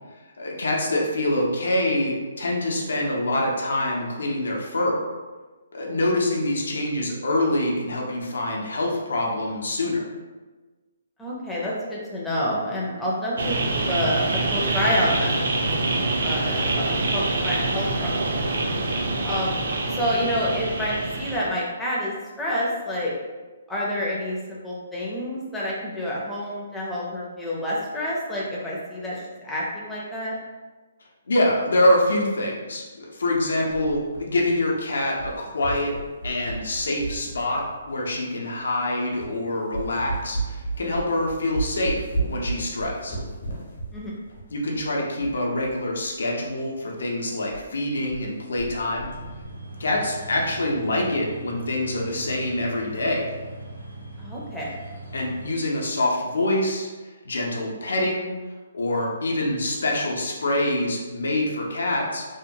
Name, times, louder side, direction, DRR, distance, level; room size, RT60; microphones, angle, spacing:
voice 1, 0.4-5.0 5.7-10.1 31.3-35.9 36.2-43.2 44.5-49.1 49.8-53.3 55.1-56.9 57.2-58.3 58.7-62.3, left 1 dB, 85° left, -1 dB, 0.6 m, -25 dB
voice 2, 11.2-15.4 15.9-18.1 19.2-19.6 19.9-23.1 23.7-30.4 43.9-44.2 54.2-54.8, equal, 5° left, -7 dB, 0.4 m, -28 dB
sound 1, 13.4-21.5, right 2 dB, 60° right, 0.4 m, -25 dB
sound 2, 33.7-34.8 35.1-38.1 38.7-38.8 39.2-39.4 39.7-45.8 46.1-46.2 46.4-46.5 46.9-47.1 47.5-47.6 47.9-48.3 48.6-49.5, right 3 dB, 65° left, 0.9 m, -34 dB
sound 3, 49.1-55.5, right 1 dB, 80° right, 1.3 m, -40 dB
2.8 x 2.2 x 2.6 m, 1.3 s
hypercardioid pair, 175°, 0 cm